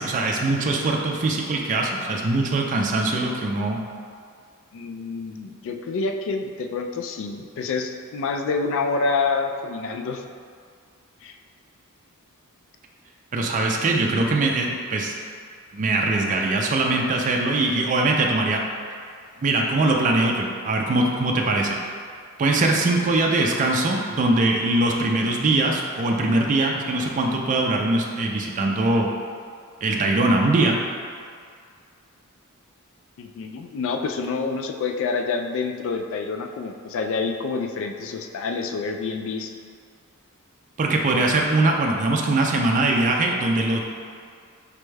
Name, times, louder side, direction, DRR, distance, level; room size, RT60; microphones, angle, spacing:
voice 1, 0.0-3.8 13.3-15.1 15.7-18.6 19.4-21.8 22.4-29.1 29.8-30.8 40.8-43.8, right 2 dB, 35° right, 0 dB, 0.4 m, -22 dB
voice 2, 4.7-10.2 11.2-11.3 33.2-39.5, left 4 dB, 60° left, 4 dB, 0.3 m, -27 dB
5.1 x 2.3 x 3.2 m, 2.2 s
head